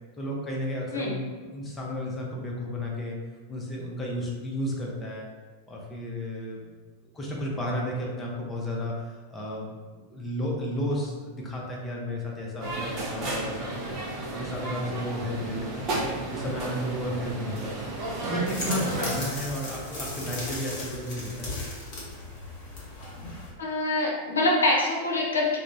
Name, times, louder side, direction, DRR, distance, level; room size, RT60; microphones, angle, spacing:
voice 1, 0.2-3.2 3.5-5.3 5.7-6.8 7.1-9.7 10.1-14.0 14.3-15.9 16.3-17.9 18.3-21.6, left 1 dB, 15° left, -3 dB, 0.6 m, -33 dB
sound 1, 12.6-19.2, right 2 dB, 35° right, 0.6 m, -33 dB
sound 2, 18.5-23.5, left 1 dB, 40° left, 1.0 m, -36 dB
voice 2, 23.6-25.6, left 2 dB, 70° left, -2 dB, 0.6 m, -25 dB
2.4 x 2.0 x 3.4 m, 1.3 s
figure-of-eight pair, 90°, 0 cm